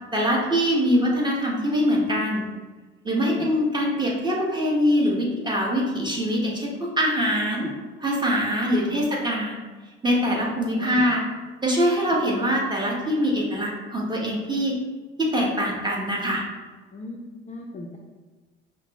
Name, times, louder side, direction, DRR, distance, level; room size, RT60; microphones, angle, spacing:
voice 1, 0.1-2.5 3.0-7.7 8.0-9.6 10.0-11.2 11.6-14.8 15.2-16.4, equal, 15° right, -3 dB, 1.1 m, -23 dB
voice 2, 3.2-3.5 7.5-7.7 8.8-9.1 10.8-11.1 16.9-18.0, left 3 dB, 25° left, 0 dB, 0.4 m, -37 dB
5.8 x 2.0 x 2.9 m, 1.3 s
hypercardioid pair, 65°, 32 cm